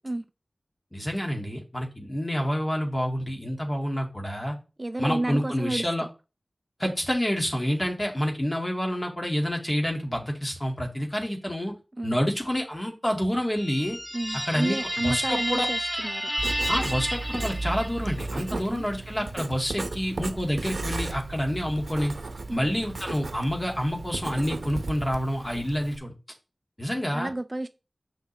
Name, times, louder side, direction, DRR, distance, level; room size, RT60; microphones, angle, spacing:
voice 1, 0.9-4.5 5.0-6.1 6.8-11.7 12.0-14.0 14.5-15.7 16.7-22.1 22.5-26.1 26.8-27.3, equal, 25° left, 2.1 m, -28 dB
voice 2, 4.8-5.8 12.0-12.2 14.1-16.3 18.5-18.9 22.5-22.7 27.1-27.7, right 1 dB, 35° right, 0.4 m, -31 dB
sound 1, 13.5-18.3, equal, ahead, 0.9 m, -31 dB
Writing, 16.4-26.0, right 3 dB, 90° right, 0.7 m, -35 dB
6.8 x 5.8 x 3.3 m
wide cardioid pair, 50°, 0 cm